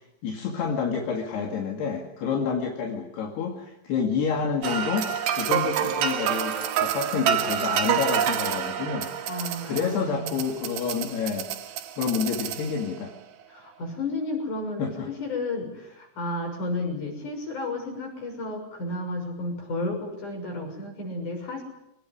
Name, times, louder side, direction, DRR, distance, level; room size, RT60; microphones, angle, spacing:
voice 1, 0.2-9.1 9.6-13.1 14.8-15.1, left 6 dB, 75° left, 1 dB, 4.3 m, -29 dB
sound 1, 4.6-13.0, right 9 dB, 85° right, 3.8 m, -28 dB
voice 2, 9.3-10.4 13.5-21.6, left 2 dB, 45° left, 3 dB, 7.8 m, -32 dB
24.5 x 19.0 x 9.7 m, 0.85 s
omnidirectional pair, 4.8 m